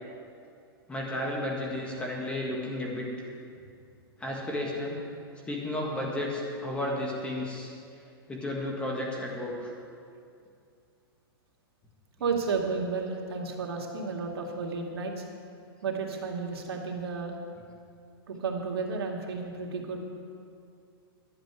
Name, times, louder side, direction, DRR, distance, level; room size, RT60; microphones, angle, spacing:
voice 1, 0.9-3.1 4.2-5.0 5.5-7.7 8.3-9.7, left 1 dB, 10° left, -2 dB, 1.7 m, -33 dB
voice 2, 12.2-15.2 15.8-17.3 18.3-20.0, right 4 dB, 85° right, 0 dB, 2.2 m, -32 dB
11.5 x 6.9 x 9.6 m, 2.4 s
hypercardioid pair, 160°, 13 cm